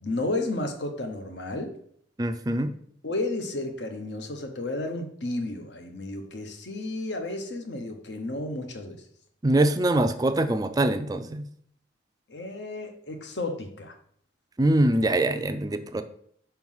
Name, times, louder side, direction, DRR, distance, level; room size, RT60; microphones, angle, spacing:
voice 1, 0.0-1.8 3.0-9.0 12.3-13.9, left 2 dB, 60° left, 6 dB, 0.9 m, -32 dB
voice 2, 2.2-2.7 9.4-11.4 14.6-16.0, right 1 dB, 20° right, 9 dB, 0.4 m, -23 dB
5.1 x 4.6 x 5.5 m, 0.65 s
head